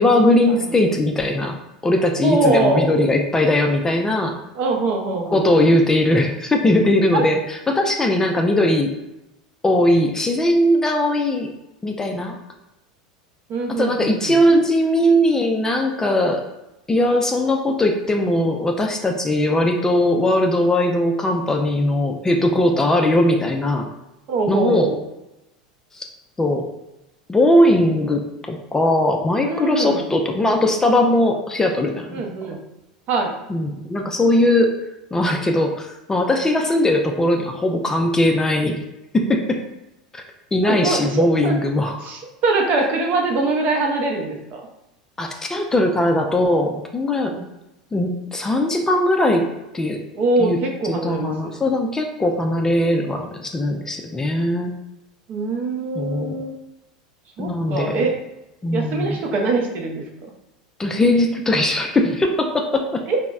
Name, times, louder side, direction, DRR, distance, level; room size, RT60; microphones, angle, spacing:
voice 1, 0.0-1.6 1.8-4.4 5.3-8.9 9.6-11.5 11.8-12.4 13.8-16.4 16.9-23.9 24.5-24.9 25.9-26.1 26.4-26.6 27.3-32.2 33.5-34.7 35.1-38.8 39.1-39.6 40.1-40.2 40.5-42.1 45.2-47.3 47.9-49.4 49.7-50.0 50.4-50.6 50.8-54.7 56.0-56.4 57.4-58.1 58.6-59.2 60.8-63.0, left 1 dB, 15° left, 3 dB, 0.3 m, -19 dB
voice 2, 2.2-2.9 4.5-5.4 7.1-7.2 13.5-14.4 24.3-25.0 29.4-30.1 32.1-32.6 33.1-33.4 40.6-41.6 42.0-44.6 47.3-47.5 50.1-51.5 55.3-56.5 57.4-58.1 58.7-60.1 63.1-63.2, right 3 dB, 45° right, 1 dB, 0.6 m, -23 dB
3.9 x 2.0 x 2.3 m, 0.92 s
hypercardioid pair, 85°, 4 cm